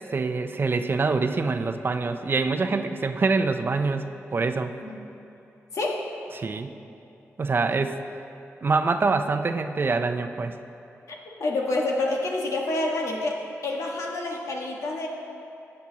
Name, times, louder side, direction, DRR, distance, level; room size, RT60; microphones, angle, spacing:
voice 1, 0.0-4.1 4.3-4.7 6.3-6.7 7.4-8.0 8.6-10.5, right 4 dB, 45° right, 8 dB, 0.5 m, -25 dB
voice 2, 5.7-6.1 11.1-15.1, left 2 dB, 75° left, -1 dB, 1.4 m, -28 dB
14.5 x 8.6 x 2.8 m, 2.8 s
cardioid pair, 75°, 5 cm